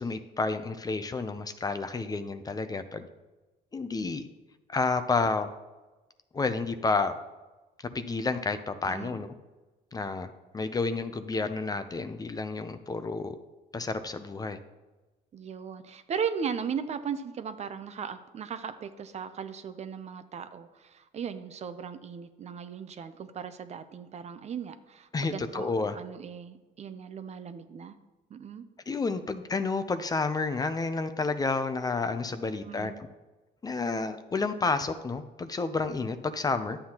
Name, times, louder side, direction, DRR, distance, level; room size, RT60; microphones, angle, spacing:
voice 1, 0.0-3.1 3.7-4.2 4.7-5.5 6.3-7.1 7.9-9.3 9.9-13.4 13.7-14.6 25.1-26.0 28.9-33.1 33.6-36.8, left 3 dB, 20° left, 10 dB, 0.5 m, -30 dB
voice 2, 8.9-9.2 15.3-28.0 28.3-28.7 32.6-33.0, right 7 dB, 40° right, 10 dB, 0.6 m, -37 dB
11.0 x 7.7 x 2.9 m, 1.1 s
cardioid pair, 110°, 17 cm